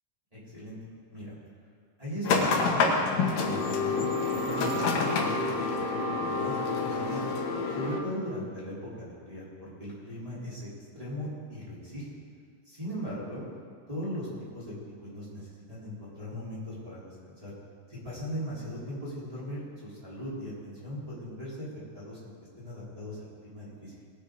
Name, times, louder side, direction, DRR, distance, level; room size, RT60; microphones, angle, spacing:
voice 1, 0.3-0.8 1.1-1.3 2.0-4.0 4.5-7.3 7.7-10.7 10.9-12.1 12.6-13.5 13.9-14.3 14.5-17.5 17.9-21.7 21.9-24.0, equal, 10° right, -10 dB, 3.9 m, -39 dB
sound 1, 2.2-8.0, left 3 dB, 85° left, 2.9 m, -27 dB
19.5 x 10.0 x 4.0 m, 2.2 s
omnidirectional pair, 3.6 m